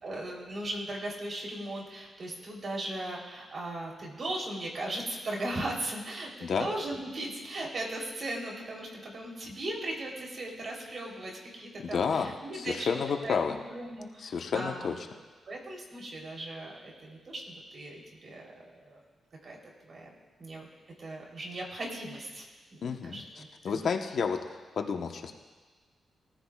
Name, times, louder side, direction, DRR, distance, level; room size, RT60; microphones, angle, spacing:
voice 1, 0.0-15.0 15.5-19.0 19.4-19.6 19.8-20.1 20.4-20.7 21.0-22.5 22.7-23.8, right 1 dB, 55° right, -1 dB, 3.6 m, -38 dB
voice 2, 11.8-13.6 14.2-14.9 22.8-25.4, left 6 dB, 70° left, 4 dB, 1.1 m, -31 dB
21.5 x 14.0 x 2.4 m, 1.4 s
cardioid pair, 75°, 0 cm